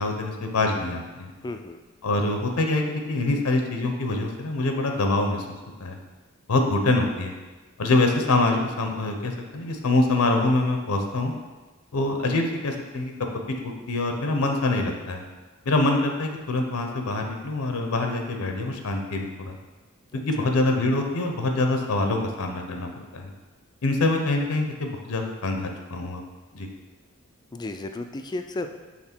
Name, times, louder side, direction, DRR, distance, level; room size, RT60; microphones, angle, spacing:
voice 1, 0.0-1.3 2.0-6.0 6.5-7.3 7.8-11.3 11.9-13.1 13.6-15.2 15.6-19.6 20.1-23.3 23.8-26.2 26.5-26.7, left 2 dB, 75° left, 4 dB, 0.7 m, -25 dB
voice 2, 1.4-1.8 20.1-20.5 27.5-28.7, left 2 dB, 20° left, 7 dB, 0.3 m, -34 dB
5.9 x 3.7 x 4.4 m, 1.2 s
head